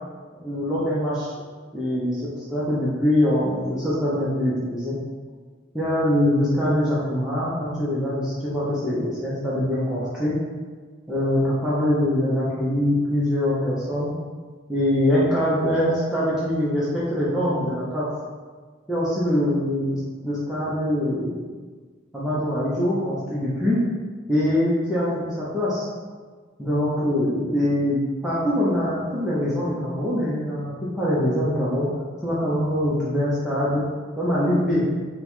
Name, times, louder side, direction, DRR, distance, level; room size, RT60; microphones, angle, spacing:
voice 1, 0.3-1.3 1.7-4.9 5.7-10.4 11.1-14.1 14.7-18.0 18.9-21.4 22.1-23.8 24.3-25.9 26.6-31.9 32.2-33.8 34.2-34.8, left 1 dB, 5° right, -10 dB, 0.6 m, -23 dB
4.0 x 2.2 x 4.3 m, 1.5 s
head